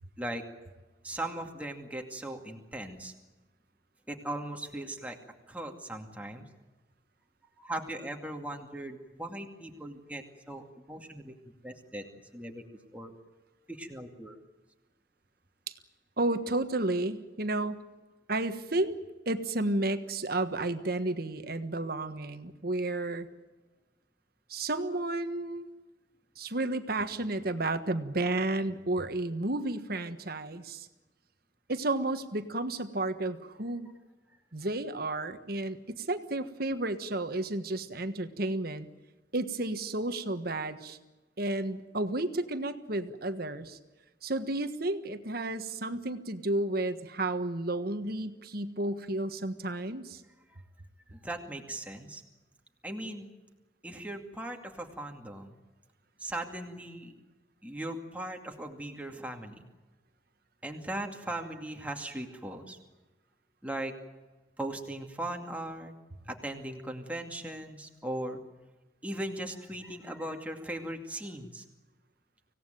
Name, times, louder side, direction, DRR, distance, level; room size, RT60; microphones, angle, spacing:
voice 1, 1.0-3.1 4.1-5.2 5.5-6.4 7.6-11.3 11.6-12.0 12.3-12.6 12.9-13.1 13.7-14.4 50.5-50.6 51.1-52.2 52.8-53.3 53.8-55.6 56.2-57.1 57.6-59.6 60.6-62.8 63.6-63.9 64.6-65.9 66.3-68.4 69.0-71.6, right 1 dB, 10° right, 2 dB, 2.4 m, -38 dB
voice 2, 16.2-17.8 18.3-19.0 19.2-23.3 24.5-25.7 26.4-30.9 31.7-33.9 34.5-38.9 39.3-41.0 41.4-43.8 44.2-50.2, right 2 dB, 55° right, 9 dB, 1.4 m, -32 dB
25.5 x 17.5 x 9.2 m, 1.2 s
head